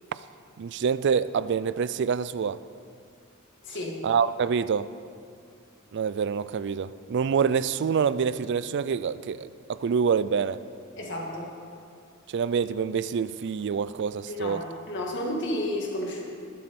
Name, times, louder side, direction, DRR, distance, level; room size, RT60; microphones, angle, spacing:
voice 1, 0.6-2.6 4.0-4.9 5.9-10.6 12.3-14.6, right 6 dB, 55° right, 16 dB, 0.4 m, -26 dB
voice 2, 3.6-4.0 11.0-11.5 14.3-16.2, left 1 dB, 55° left, -1 dB, 2.0 m, -32 dB
19.5 x 7.7 x 4.3 m, 2.3 s
head